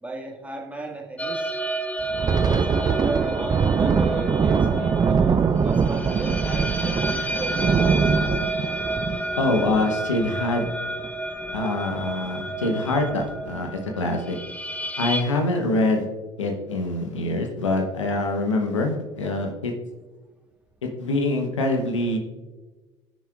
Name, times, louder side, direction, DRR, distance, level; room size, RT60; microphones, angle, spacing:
voice 1, 0.0-1.5 2.5-7.8, right 2 dB, 10° right, 0 dB, 1.9 m, -35 dB
sound 1, 1.2-15.2, right 1 dB, 10° left, 1.2 m, -31 dB
Thunder, 2.0-11.1 11.4-11.6 12.0-12.3 12.9-13.4, right 5 dB, 25° right, 0.5 m, -23 dB
voice 2, 9.4-10.7 11.5-14.4 15.0-16.1 16.4-19.7 20.8-22.2, left 2 dB, 90° left, 3 dB, 1.0 m, -24 dB
18.0 x 6.1 x 2.4 m, 1.2 s
hypercardioid pair, 60°, 15 cm